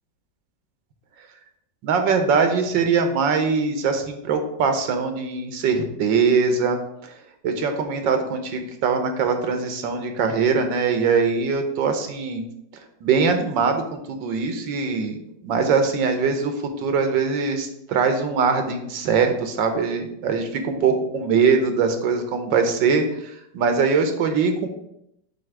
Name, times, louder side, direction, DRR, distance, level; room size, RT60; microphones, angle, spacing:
voice 1, 1.8-7.1 7.4-12.4 13.0-24.7, right 5 dB, 85° right, 6 dB, 1.6 m, -22 dB
7.6 x 2.9 x 5.9 m, 0.79 s
omnidirectional pair, 2.0 m